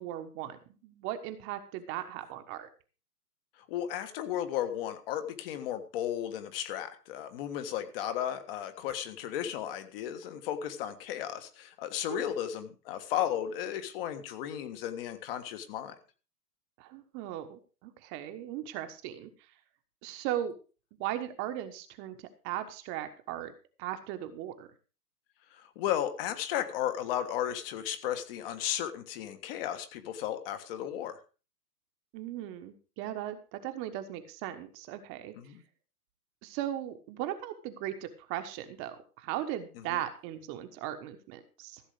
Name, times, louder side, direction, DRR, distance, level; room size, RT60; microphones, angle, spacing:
voice 1, 0.0-2.7 12.1-12.3 16.8-19.3 20.0-20.5 21.0-23.5 23.8-24.7 32.1-35.3 36.4-41.8, right 12 dB, 25° right, 8 dB, 1.3 m, -38 dB
voice 2, 3.7-16.0 25.5-31.2 35.4-35.6 39.9-40.0, left 10 dB, 35° left, 9 dB, 1.5 m, -34 dB
15.0 x 7.3 x 5.1 m, 0.35 s
hypercardioid pair, 125°, 47 cm